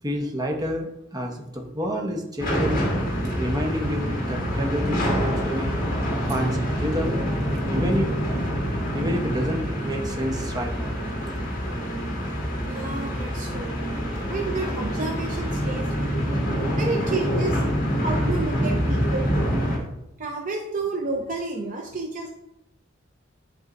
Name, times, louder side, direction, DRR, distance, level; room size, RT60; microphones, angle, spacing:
voice 1, 0.0-2.8 3.4-5.7 6.3-7.2 7.7-8.1 8.9-10.9 11.2-11.3, equal, 20° right, 0 dB, 0.9 m, -29 dB
sound 1, 2.4-19.8, equal, 45° left, 1.6 m, -26 dB
voice 2, 12.7-13.8 14.3-16.4 16.8-17.6 18.0-19.5 20.2-22.3, right 3 dB, 40° right, 1 dB, 0.6 m, -31 dB
10.5 x 3.6 x 2.6 m, 0.83 s
head